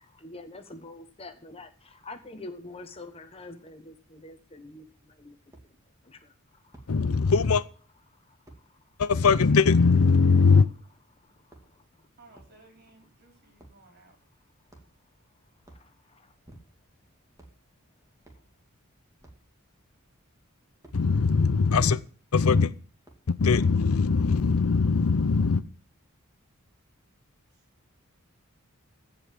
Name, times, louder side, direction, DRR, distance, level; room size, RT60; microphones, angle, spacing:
voice 1, 0.0-5.4 6.0-6.8 8.1-8.4 8.6-8.8 11.2-12.1 15.7-16.3, left 2 dB, 30° left, 8 dB, 1.2 m, -46 dB
sound 1, 4.5-4.6 5.5-5.7 6.7-6.9 8.5-8.6 10.1-10.3 11.3-11.9 12.3-12.6 13.6-13.8 14.7-15.1 15.6-15.9 16.4-16.9 17.3-17.6 18.2-18.5 19.2-19.5 20.8-21.0 21.9-22.1 23.0-23.4, right 1 dB, 15° right, 2.3 m, -52 dB
voice 2, 6.9-7.6 9.0-10.7 20.9-22.0 22.3-22.7 23.3-25.6, left 4 dB, 90° left, 17 dB, 0.6 m, -21 dB
voice 3, 12.2-14.2 27.5-27.6, right 2 dB, 50° right, 2 dB, 4.7 m, -57 dB
15.5 x 5.4 x 7.5 m, 0.42 s
head